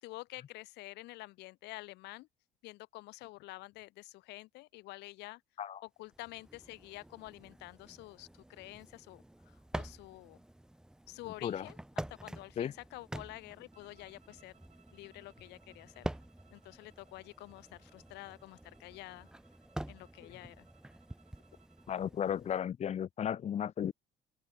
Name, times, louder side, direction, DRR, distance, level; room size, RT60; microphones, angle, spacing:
voice 1, 0.0-2.3 2.6-5.4 5.8-10.4 11.1-14.5 14.9-16.1 16.5-19.3 19.9-20.7, left 20 dB, 90° left, 2.5 m, -49 dB
sound 1, 6.0-22.6, right 1 dB, 5° right, 0.6 m, -47 dB
sound 2, 13.7-22.1, right 7 dB, 40° right, 6.8 m, -69 dB
voice 2, 21.9-23.9, left 9 dB, 40° left, 0.7 m, -34 dB
cardioid pair, 110°, 17 cm